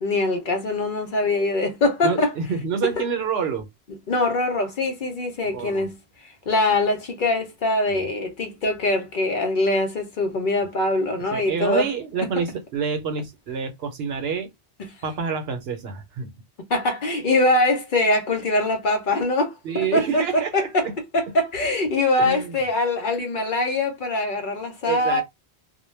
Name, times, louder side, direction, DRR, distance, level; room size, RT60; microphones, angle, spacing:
voice 1, 0.0-2.3 4.1-6.0 6.2-11.9 16.7-20.9 21.1-25.2, left 2 dB, 55° left, 0.7 m, -23 dB
voice 2, 2.0-3.7 5.5-5.9 7.9-8.1 11.3-14.5 15.0-16.3 19.6-20.7 22.2-22.6 24.9-25.2, right 6 dB, 70° right, 0.9 m, -27 dB
2.2 x 2.2 x 3.1 m
omnidirectional pair, 1.1 m